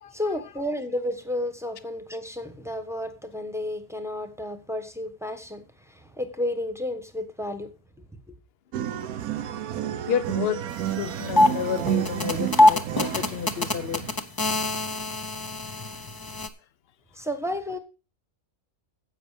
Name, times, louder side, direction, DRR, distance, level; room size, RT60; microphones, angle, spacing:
voice 1, 0.1-7.7 8.0-8.3 17.1-17.8, left 1 dB, ahead, 1.1 m, -32 dB
sound 1, 8.7-14.1, right 11 dB, 80° right, 1.2 m, -31 dB
voice 2, 10.1-14.1, left 9 dB, 50° left, 0.9 m, -31 dB
sound 2, 10.7-10.8 11.1-16.5, left 2 dB, 20° left, 0.6 m, -24 dB
10.5 x 8.0 x 5.0 m
omnidirectional pair, 1.5 m